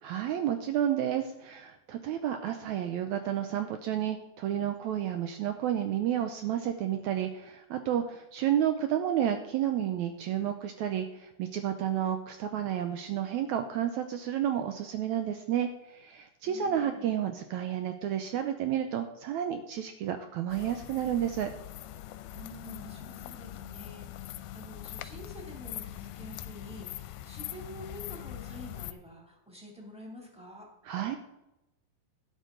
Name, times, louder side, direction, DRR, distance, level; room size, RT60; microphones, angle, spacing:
voice 1, 0.0-21.5 30.8-31.2, right 10 dB, 90° right, 7 dB, 1.6 m, -31 dB
voice 2, 16.4-17.1 22.3-30.7, equal, ahead, -2 dB, 2.0 m, -48 dB
sound 1, 20.5-28.9, left 13 dB, 80° left, 2.1 m, -42 dB
12.0 x 10.5 x 3.8 m, 0.93 s
omnidirectional pair, 4.1 m